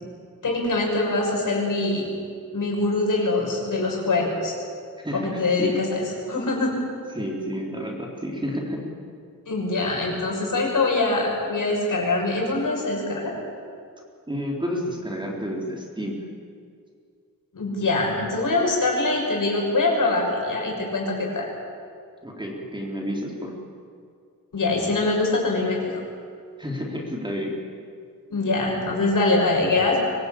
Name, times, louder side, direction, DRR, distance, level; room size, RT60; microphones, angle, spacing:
voice 1, 0.4-2.0 2.5-4.5 5.1-6.8 9.5-13.3 17.5-21.5 24.5-26.0 28.3-30.0, left 2 dB, 65° left, -1 dB, 6.4 m, -23 dB
voice 2, 5.0-5.8 7.1-8.9 14.3-16.2 22.2-23.5 26.6-27.6, equal, 15° right, -2 dB, 4.1 m, -30 dB
24.0 x 17.5 x 8.7 m, 2.2 s
wide cardioid pair, 95°, 34 cm